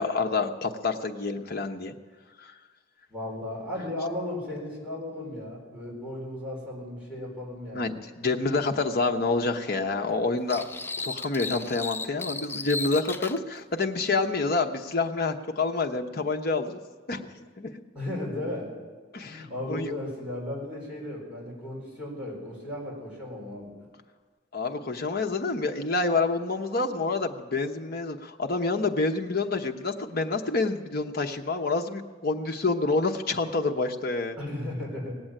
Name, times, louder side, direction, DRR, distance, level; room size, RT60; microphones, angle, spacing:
voice 1, 0.0-1.9 2.4-2.5 7.7-10.6 11.0-16.8 17.1-17.7 19.1-19.9 24.5-34.4, left 3 dB, 55° left, 4 dB, 1.0 m, -28 dB
voice 2, 3.1-8.0 17.9-18.7 19.2-23.7 34.4-35.1, left 1 dB, 5° right, -5 dB, 4.4 m, -35 dB
sound 1, 10.5-13.4, left 3 dB, 15° left, 0.4 m, -35 dB
18.5 x 7.9 x 8.9 m, 1.4 s
head